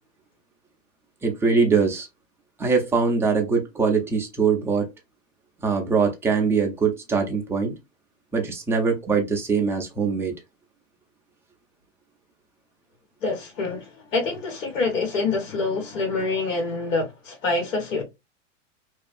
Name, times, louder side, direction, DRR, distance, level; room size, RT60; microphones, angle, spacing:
voice 1, 1.2-2.1 2.6-4.9 5.6-7.7 8.3-10.3, right 5 dB, 5° right, 0.4 m, -22 dB
voice 2, 13.2-18.0, left 3 dB, 85° left, 1.5 m, -26 dB
2.6 x 2.4 x 2.4 m
hypercardioid pair, 125°, 38 cm